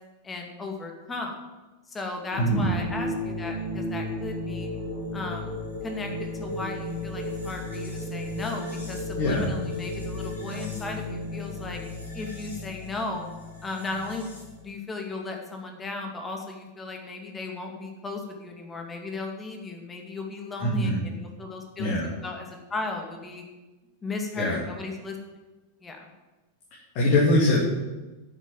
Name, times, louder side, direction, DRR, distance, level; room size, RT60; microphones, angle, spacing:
voice 1, 0.2-1.4 1.9-4.7 5.1-5.5 5.8-11.8 12.1-13.3 13.6-14.3 14.6-22.0 22.2-23.4 24.0-25.2 25.8-26.0, left 3 dB, 15° left, 2 dB, 2.4 m, -36 dB
sound 1, 2.3-14.6, left 1 dB, 90° right, 4.0 m, -34 dB
voice 2, 2.4-2.7 9.2-9.5 20.6-21.0 21.8-22.1 24.4-24.6 26.9-27.6, left 1 dB, 45° left, -4 dB, 2.8 m, -22 dB
9.8 x 7.5 x 7.6 m, 1.1 s
figure-of-eight pair, 90°, 0 cm